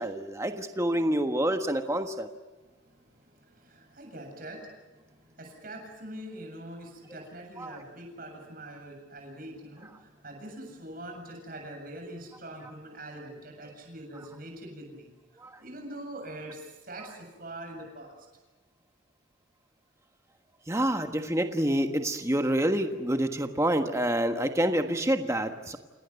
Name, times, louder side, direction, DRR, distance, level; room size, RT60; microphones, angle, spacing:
voice 1, 0.0-2.3 7.6-7.8 15.4-15.5 20.7-25.8, right 1 dB, 15° right, 6 dB, 1.4 m, -27 dB
voice 2, 2.7-18.1, right 1 dB, 45° right, 3 dB, 7.5 m, -44 dB
29.0 x 18.5 x 9.4 m, 1.2 s
head